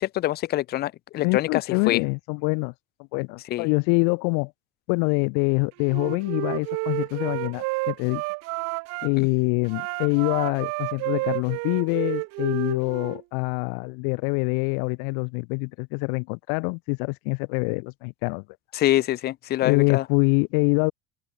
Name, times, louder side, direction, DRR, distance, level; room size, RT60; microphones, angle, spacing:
voice 1, 0.0-2.0 3.5-3.7 18.7-20.0, left 14 dB, 30° left, 0.5 m, -25 dB
voice 2, 1.2-2.7 3.1-4.5 4.9-8.2 9.0-18.4 19.6-20.9, left 40 dB or more, 75° left, 0.9 m, -25 dB
Wind instrument woodwind instrument, 5.8-9.1 9.6-13.2, right 26 dB, 50° right, 0.5 m, -30 dB
cardioid pair, 175°, 34 cm